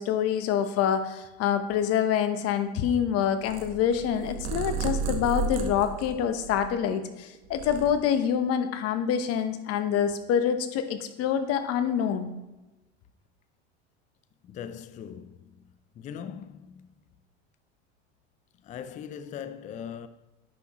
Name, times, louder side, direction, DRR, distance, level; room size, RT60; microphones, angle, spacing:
voice 1, 0.0-12.3, left 8 dB, 50° left, 0.9 m, -26 dB
Purr, 3.4-7.0 7.3-8.4, right 4 dB, 65° right, 1.2 m, -33 dB
voice 2, 14.4-15.6 16.0-16.9 18.6-20.1, left 8 dB, 25° left, 0.4 m, -40 dB
9.8 x 5.8 x 3.0 m
supercardioid pair, 105°, 32 cm